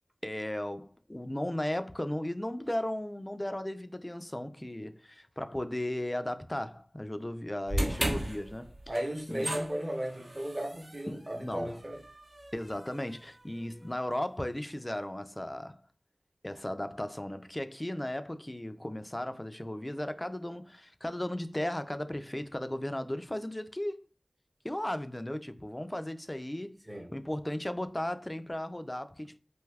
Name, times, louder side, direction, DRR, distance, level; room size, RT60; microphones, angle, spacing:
voice 1, 0.2-8.7 9.3-9.5 11.1-11.8 12.5-15.8 16.4-24.0 24.6-26.8 27.1-29.4, left 1 dB, 20° left, 0.3 m, -36 dB
sound 1, 7.7-13.9, right 1 dB, 65° right, 0.7 m, -37 dB
voice 2, 8.9-12.0 26.8-27.1, right 1 dB, 30° right, 0.7 m, -35 dB
2.6 x 2.3 x 3.2 m
wide cardioid pair, 55°, 0 cm